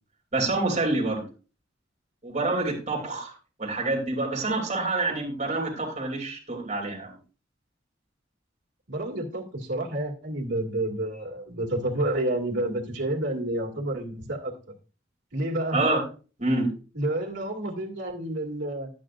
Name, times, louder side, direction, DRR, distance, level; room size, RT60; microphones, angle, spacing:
voice 1, 0.3-1.2 2.2-3.3 3.6-7.1 15.7-16.0 16.4-16.7, right 2 dB, 40° right, -1 dB, 2.9 m, -27 dB
voice 2, 8.9-14.5 15.3-15.8 16.9-18.9, right 1 dB, 70° right, -1 dB, 2.3 m, -29 dB
11.5 x 9.0 x 2.5 m, 0.35 s
head